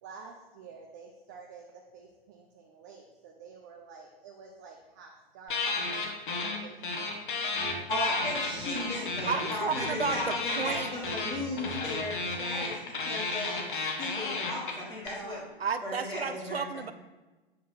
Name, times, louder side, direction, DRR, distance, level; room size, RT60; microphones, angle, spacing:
voice 1, 0.0-7.7 8.1-8.4 13.4-13.7 15.2-15.7, right 5 dB, 20° right, 2 dB, 0.4 m, -49 dB
sound 1, 5.5-6.6 6.8-15.1, left 3 dB, 55° left, 1.3 m, -33 dB
sound 2, 7.5-7.8 8.1-9.3 9.5-10.2 10.5-12.4, right 1 dB, 45° right, 2.0 m, -45 dB
voice 2, 7.9-13.6 14.0-15.4 15.8-16.6, left 1 dB, 15° left, -7 dB, 1.5 m, -36 dB
voice 3, 9.2-10.9 15.6-16.9, right 5 dB, 80° right, 11 dB, 0.6 m, -32 dB
8.3 x 4.6 x 4.4 m, 1.2 s
figure-of-eight pair, 115°, 30 cm